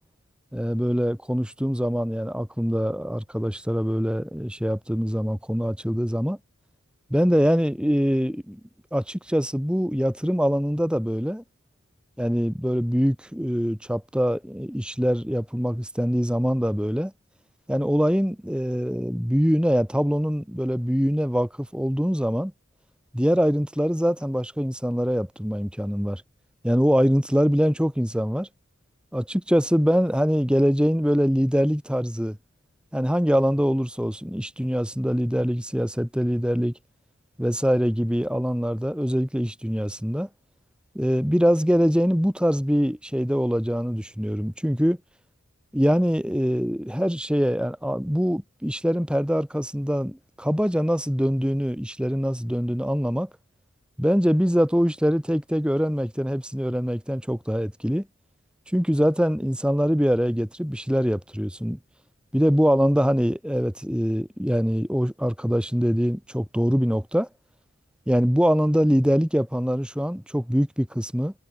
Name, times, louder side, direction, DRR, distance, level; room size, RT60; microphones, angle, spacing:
voice 1, 0.5-6.4 7.1-8.6 8.9-11.4 12.2-17.1 17.7-22.5 23.1-26.2 26.6-28.5 29.1-32.4 32.9-36.7 37.4-40.3 40.9-45.0 45.7-53.3 54.0-58.1 58.7-61.8 62.3-67.3 68.1-71.3, equal, 5° right, 2.8 m, -23 dB
head